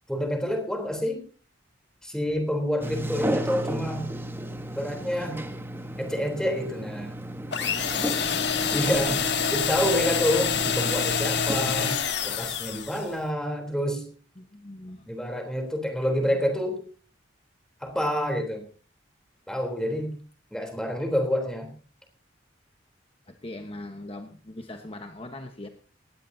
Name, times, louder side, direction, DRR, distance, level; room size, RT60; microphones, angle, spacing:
voice 1, 0.1-1.2 2.0-4.1 4.7-5.4 6.0-7.1 8.7-9.2 9.5-14.1 15.1-16.8 17.8-18.6 19.5-20.1 20.5-21.7, equal, 5° left, 4 dB, 3.5 m, -28 dB
Sliding door, 2.8-12.0, right 1 dB, 10° right, 1.2 m, -33 dB
sound 1, 7.5-13.1, left 7 dB, 60° left, 1.7 m, -27 dB
voice 2, 8.0-8.4 11.8-12.0 14.4-15.1 16.3-16.4 23.3-25.7, left 1 dB, 30° left, 5 dB, 1.2 m, -41 dB
19.0 x 17.0 x 2.8 m, 0.39 s
head